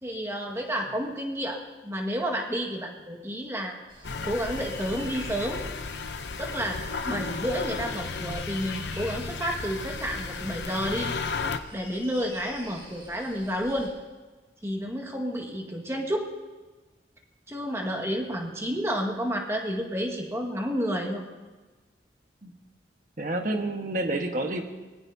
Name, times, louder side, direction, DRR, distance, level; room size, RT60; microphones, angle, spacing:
voice 1, 0.0-3.7 4.2-5.6 6.4-11.1 11.7-13.9 14.6-16.3 17.5-21.2, equal, 15° right, 1 dB, 1.8 m, -30 dB
sound 1, 3.9-13.9, equal, 30° right, 5.7 m, -47 dB
sound 2, 4.0-11.6, left 4 dB, 75° left, 0.7 m, -34 dB
voice 2, 23.2-24.6, right 1 dB, 45° right, 4 dB, 1.4 m, -29 dB
23.5 x 19.0 x 2.8 m, 1.3 s
head